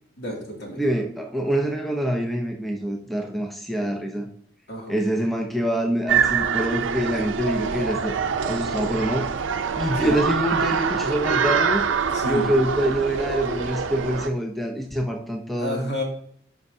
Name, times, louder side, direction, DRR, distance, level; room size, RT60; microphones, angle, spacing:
voice 1, 0.2-0.8 4.7-5.0 10.0-10.2 12.1-12.5 15.6-16.0, left 1 dB, 60° left, -1 dB, 2.3 m, -30 dB
voice 2, 0.8-4.3 4.9-8.1 8.4-9.3 9.8-11.9 12.3-15.8, right 1 dB, ahead, 2 dB, 0.6 m, -25 dB
sound 1, 6.1-14.3, right 6 dB, 80° right, 0.5 m, -25 dB
11.5 x 5.3 x 2.7 m, 0.64 s
head